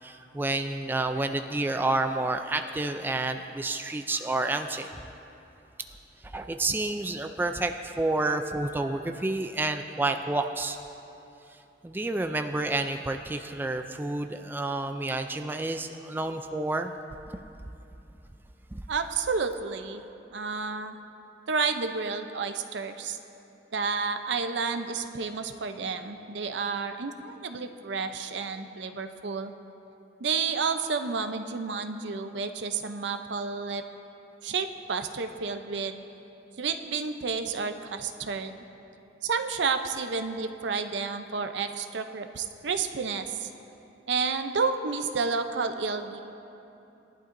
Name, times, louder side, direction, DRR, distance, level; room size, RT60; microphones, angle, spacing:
voice 1, 0.0-4.9 6.2-10.8 11.5-16.9 18.7-18.8, right 2 dB, 10° right, 6 dB, 0.3 m, -29 dB
voice 2, 18.9-20.0 20.3-21.0 21.5-23.2 23.7-29.5 30.2-33.8 34.4-36.0 36.6-38.5 39.2-43.5 44.1-46.2, right 5 dB, 70° right, 8 dB, 0.6 m, -30 dB
19.0 x 11.5 x 2.6 m, 2.8 s
head